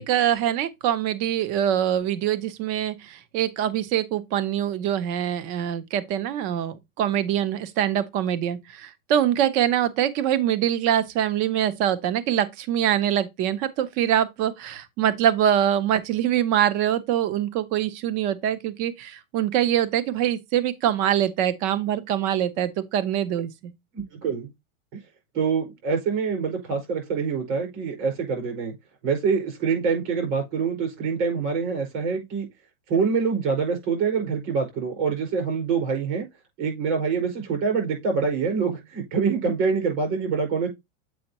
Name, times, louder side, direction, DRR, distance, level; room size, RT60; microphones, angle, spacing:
voice 1, 0.0-23.7, right 10 dB, 20° right, 0.4 m, -24 dB
voice 2, 23.9-24.5 25.3-28.7 29.0-32.5 32.9-36.3 36.6-40.7, right 5 dB, 55° right, 5.0 m, -25 dB
7.7 x 5.2 x 2.8 m
supercardioid pair, 155°, 42 cm